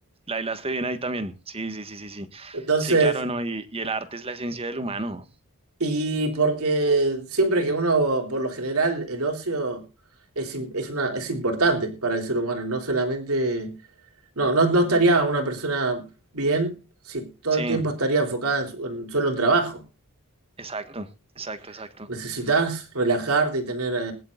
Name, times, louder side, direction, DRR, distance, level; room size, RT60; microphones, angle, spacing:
voice 1, 0.3-5.2 17.5-17.8 20.6-21.1 21.4-22.4, right 2 dB, 25° right, 1.5 m, -32 dB
voice 2, 2.5-3.2 5.8-9.8 10.3-13.7 14.4-16.0 16.3-16.7 17.1-19.8 22.1-24.1, right 3 dB, 70° right, 3.5 m, -24 dB
22.0 x 11.0 x 2.5 m
head